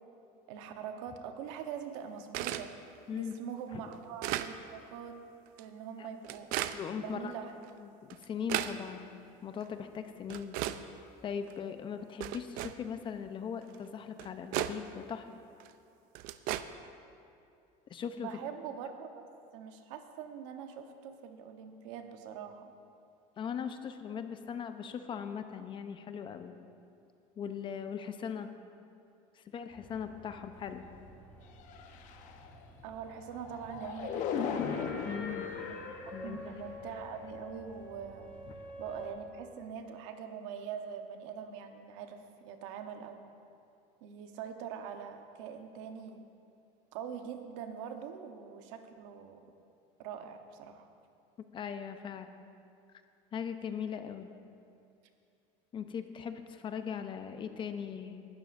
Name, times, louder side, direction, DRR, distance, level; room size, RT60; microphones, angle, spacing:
voice 1, 0.5-2.7 3.1-5.2 5.6-6.5 7.0-7.6 18.2-22.7 32.8-34.6 35.6-35.7 36.0-38.3 38.8-43.2 44.0-46.3 46.9-49.5 50.0-50.9, right 7 dB, 85° right, 6 dB, 1.0 m, -43 dB
sound 1, 2.3-2.7 3.3-3.4 3.9-4.5 5.5-5.6 6.2-6.8 7.6-7.7 8.1-8.8 9.6-9.7 10.3-10.8 11.5-11.6 12.2-12.8 13.7-13.8 14.2-14.8 15.6-15.7 16.1-16.6, right 14 dB, 65° right, 0.5 m, -35 dB
voice 2, 6.7-7.3 7.8-10.6 11.2-15.3 17.9-18.3 23.4-26.5 27.4-28.5 29.4-30.8 35.1-35.5 36.1-36.6 51.5-52.3 53.3-54.3 55.7-58.3, left 7 dB, 30° left, 8 dB, 0.7 m, -39 dB
sound 2, 29.7-39.1, left 2 dB, 10° left, 2.4 m, -48 dB
sound 3, 31.6-32.6 33.2-36.3 36.8-37.1, left 7 dB, 55° left, 0.9 m, -37 dB
19.0 x 12.5 x 2.6 m, 2.5 s
cardioid pair, 135°, 16 cm